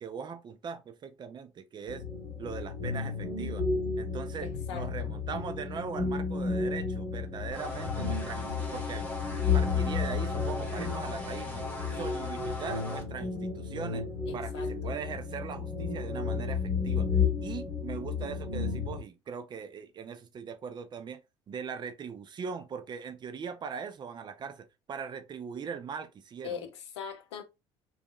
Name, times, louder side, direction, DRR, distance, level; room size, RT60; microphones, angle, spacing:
voice 1, 0.0-2.0 2.4-3.7 4.0-9.1 9.5-11.6 11.9-14.1 14.3-21.2 21.5-26.6, right 6 dB, 30° right, 0.5 m, -40 dB
sound 1, 1.9-19.0, left 5 dB, 55° left, 1.1 m, -32 dB
voice 2, 4.4-5.1 14.3-14.7 26.4-27.4, left 8 dB, 70° left, 0.4 m, -41 dB
sound 2, 7.5-13.0, left 2 dB, 10° left, 1.0 m, -40 dB
2.6 x 2.3 x 2.3 m
figure-of-eight pair, 60°, 15 cm